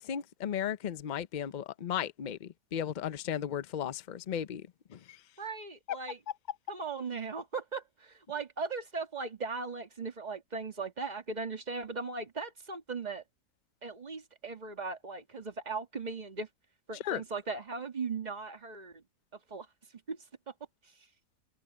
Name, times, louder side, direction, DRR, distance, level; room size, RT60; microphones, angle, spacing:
voice 1, 0.0-4.6 4.9-5.2 17.0-17.2, left 9 dB, 90° left, 0.4 m, -35 dB
voice 2, 5.4-6.2 6.7-13.2 13.8-16.5 16.9-19.0 19.5-19.7 20.1-20.2 20.5-20.6, right 4 dB, 25° right, 1.9 m, -38 dB
omnidirectional pair, 1.7 m